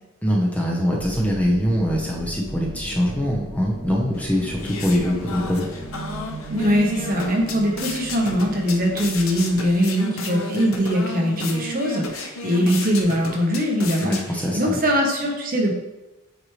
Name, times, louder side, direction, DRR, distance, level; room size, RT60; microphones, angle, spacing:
voice 1, 0.2-5.7 14.0-14.8, equal, 5° left, -3 dB, 0.9 m, -23 dB
sound 1, 0.9-9.7, right 2 dB, 85° right, 1.7 m, -36 dB
sound 2, 4.1-14.7, left 3 dB, 80° left, 0.8 m, -33 dB
voice 2, 6.5-14.1 14.5-15.8, equal, 40° right, 0 dB, 1.1 m, -21 dB
7.8 x 4.6 x 3.2 m, 1.0 s
head